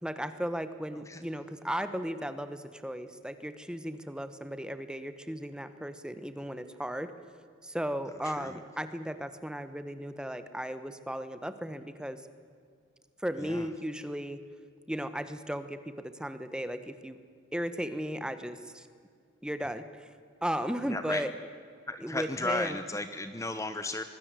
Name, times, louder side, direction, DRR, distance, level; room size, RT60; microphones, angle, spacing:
voice 1, 0.0-7.1 7.6-12.2 13.2-14.4 14.9-17.2 17.5-18.9 19.4-20.1 20.4-21.3 22.0-22.8, equal, 5° right, 11 dB, 1.2 m, -36 dB
voice 2, 8.2-8.6 13.4-13.7 20.9-21.2 21.9-24.0, left 2 dB, 15° left, 10 dB, 0.9 m, -34 dB
25.5 x 20.5 x 7.6 m, 2.2 s
head